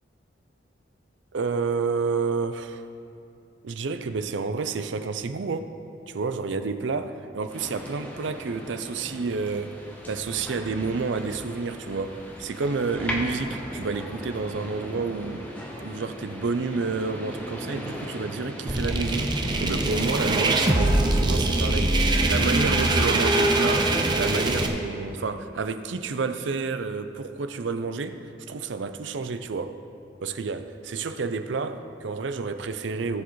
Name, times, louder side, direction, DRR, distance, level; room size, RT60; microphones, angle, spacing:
voice 1, 1.3-2.8 3.6-5.7 6.1-9.8 10.1-15.5 15.8-22.0 22.3-28.2 28.5-29.8 30.2-33.2, right 4 dB, 75° right, 10 dB, 0.5 m, -30 dB
sound 1, 7.5-24.7, equal, 10° left, 1.0 m, -38 dB
sound 2, 18.7-24.7, right 2 dB, 25° right, 0.6 m, -22 dB
16.5 x 7.1 x 3.1 m, 2.6 s
head